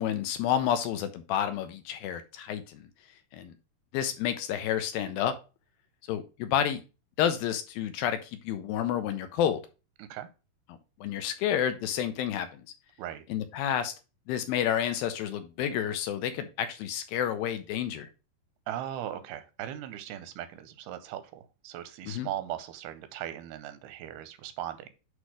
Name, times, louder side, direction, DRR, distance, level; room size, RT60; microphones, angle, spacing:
voice 1, 0.0-2.9 3.3-3.5 3.9-5.3 6.1-6.8 7.2-9.6 11.0-12.6 13.3-13.9 14.3-18.1 22.0-22.3, left 10 dB, 80° left, 9 dB, 2.3 m, -30 dB
voice 2, 18.7-24.9, right 11 dB, 90° right, 11 dB, 2.6 m, -38 dB
8.1 x 3.2 x 4.8 m, 0.30 s
omnidirectional pair, 4.5 m